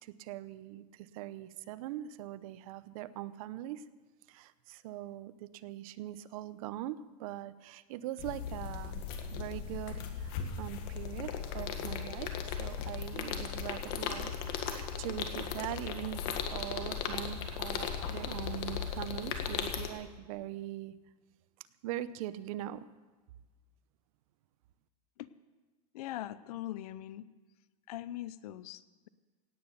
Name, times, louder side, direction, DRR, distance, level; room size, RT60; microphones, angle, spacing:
voice 1, 0.0-3.8 4.3-9.0 9.3-14.3 14.6-16.2 16.5-21.0 21.8-22.9, right 13 dB, 60° right, 15 dB, 0.8 m, -42 dB
sound 1, 8.2-19.9, left 7 dB, 50° left, 1.6 m, -37 dB
voice 2, 25.9-27.3 27.9-29.1, left 14 dB, 75° left, 16 dB, 0.7 m, -41 dB
17.0 x 9.2 x 6.7 m, 1.3 s
supercardioid pair, 155°, 20 cm